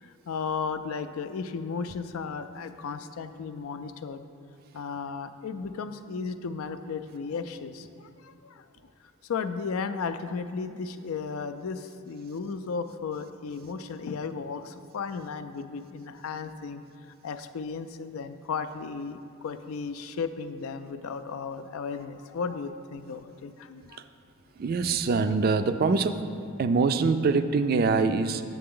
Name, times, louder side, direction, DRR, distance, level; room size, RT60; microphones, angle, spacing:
voice 1, 0.0-4.3 4.7-8.6 9.2-16.8 17.2-24.0, left 5 dB, 85° left, 10 dB, 0.4 m, -35 dB
voice 2, 24.6-26.2 26.6-28.4, right 4 dB, 45° right, 9 dB, 0.3 m, -24 dB
7.6 x 6.9 x 3.7 m, 2.7 s
head